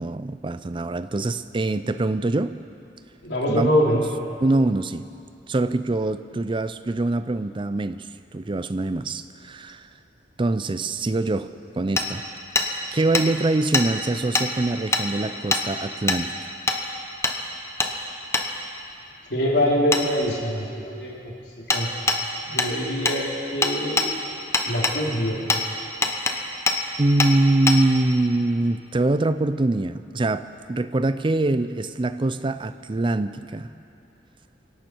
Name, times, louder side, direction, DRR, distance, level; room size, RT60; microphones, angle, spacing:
voice 1, 0.0-2.6 3.5-4.0 4.4-5.1 5.5-8.1 8.3-9.9 10.4-11.5 11.8-12.2 12.9-16.3 27.0-33.7, right 2 dB, 30° right, 12 dB, 0.5 m, -24 dB
voice 2, 3.2-4.1 19.3-21.3 21.7-21.9 22.5-24.2 24.6-25.4, equal, 75° left, -3 dB, 3.1 m, -24 dB
Hammer, 12.0-12.1 12.6-12.7 13.1-13.3 13.7-13.9 14.3-14.5 14.9-15.0 15.5-15.6 16.1-16.2 16.7-16.8 17.2-17.4 17.8-17.9 18.3-18.5 19.9-20.0 21.7-21.8 22.1-22.2 22.6-22.7 23.1-23.2 23.6-24.1 24.5-25.0 25.5-25.6 26.0-26.4 26.7-26.8 27.2-27.3 27.7-27.8, left 3 dB, 15° left, 1.0 m, -22 dB
25.5 x 11.5 x 4.6 m, 2.7 s
head